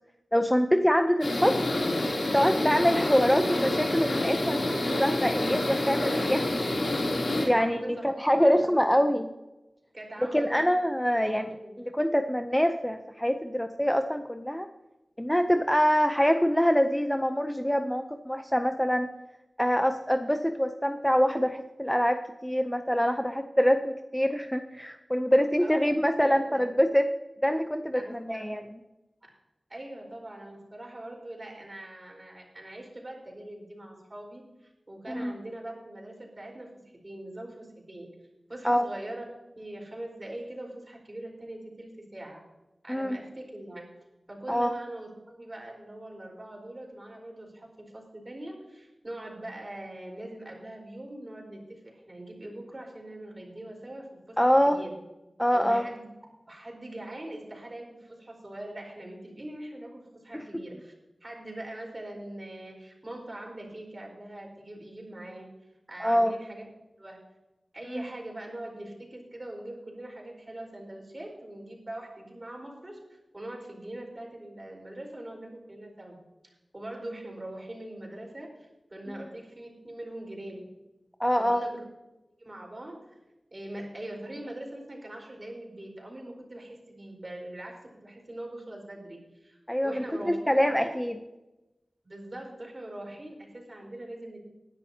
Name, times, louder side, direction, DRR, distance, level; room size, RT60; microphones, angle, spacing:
voice 1, 0.3-1.6 2.3-4.7 5.0-7.0 7.4-7.8 8.2-9.3 10.3-14.7 15.2-19.1 19.6-27.1 27.4-28.6 35.1-35.3 38.6-38.9 42.9-43.2 44.5-44.7 54.4-54.8 55.4-55.8 60.3-60.4 66.0-66.3 67.9-68.1 81.2-81.7 89.7-91.1, equal, 5° left, 7 dB, 0.6 m, -25 dB
sound 1, 1.2-7.5, left 1 dB, 90° left, 3.0 m, -28 dB
voice 2, 7.5-9.0 9.9-10.6 11.1-11.8 25.6-26.7 27.9-28.5 29.7-36.7 37.0-38.1 38.5-39.2 39.6-42.4 42.8-43.9 44.3-54.9 55.5-56.0 56.5-60.9 61.2-65.5 65.9-66.7 67.0-67.2 67.7-76.1 76.7-80.7 81.4-81.8 82.4-83.2 83.5-90.9 92.0-94.4, right 1 dB, 35° right, 0 dB, 4.4 m, -42 dB
20.0 x 11.0 x 2.8 m, 0.98 s
wide cardioid pair, 85°, 0 cm